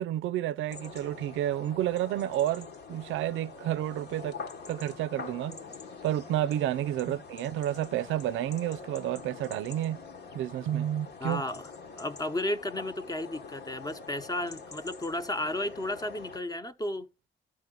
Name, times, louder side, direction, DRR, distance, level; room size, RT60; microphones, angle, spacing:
voice 1, 0.0-4.4 4.7-5.6 6.0-10.0 10.3-11.4, right 12 dB, 80° right, 0.5 m, -30 dB
sound 1, 0.7-16.4, left 4 dB, 55° left, 1.3 m, -45 dB
voice 2, 11.2-11.7 12.0-17.1, left 1 dB, 20° left, 1.0 m, -33 dB
12.0 x 4.9 x 3.8 m
cardioid pair, 90°, 20 cm